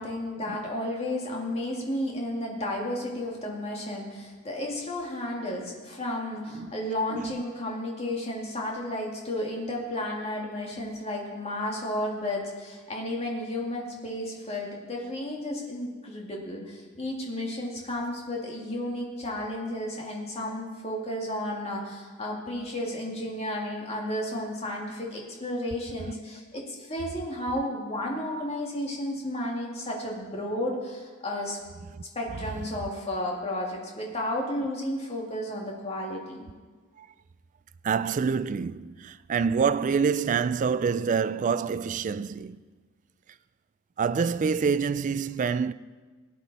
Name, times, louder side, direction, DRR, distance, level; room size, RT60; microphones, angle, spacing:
voice 1, 0.0-31.6 32.2-36.4, left 1 dB, 30° left, 2.1 m, -32 dB
voice 2, 37.8-42.6 44.0-45.7, right 6 dB, 35° right, 0.3 m, -26 dB
17.0 x 9.9 x 4.1 m
head